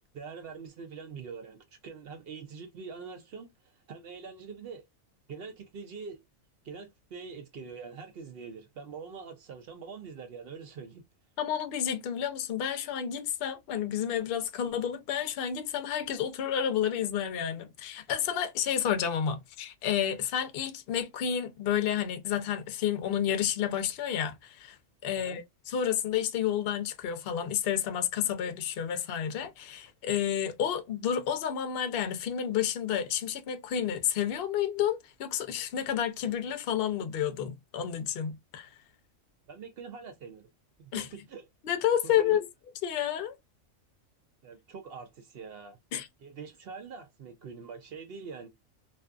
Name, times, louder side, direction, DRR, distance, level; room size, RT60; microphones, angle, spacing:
voice 1, 0.1-4.8 5.3-6.2 6.6-11.0 25.2-25.4 39.5-40.5 40.8-41.4 42.2-42.4 44.4-45.8 46.2-48.5, right 5 dB, 60° right, 0.6 m, -44 dB
voice 2, 11.4-24.8 25.0-38.7 40.9-41.1 41.6-42.5 42.8-43.4 45.9-46.1, left 9 dB, 60° left, 0.6 m, -30 dB
2.5 x 2.3 x 2.3 m
omnidirectional pair, 1.3 m